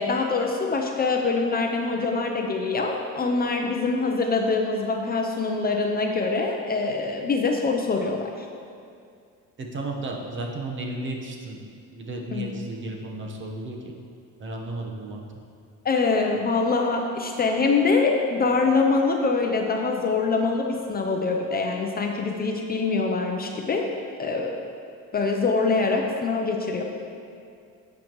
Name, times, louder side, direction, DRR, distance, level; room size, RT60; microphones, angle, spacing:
voice 1, 0.0-8.5 12.3-12.5 15.8-23.9 24.2-24.6 25.1-26.8, left 4 dB, 25° left, 2 dB, 0.6 m, -24 dB
voice 2, 9.6-11.6 11.9-13.8 14.4-15.2, right 2 dB, 35° right, 1 dB, 1.1 m, -33 dB
11.5 x 7.2 x 3.1 m, 2.4 s
cardioid pair, 135°, 34 cm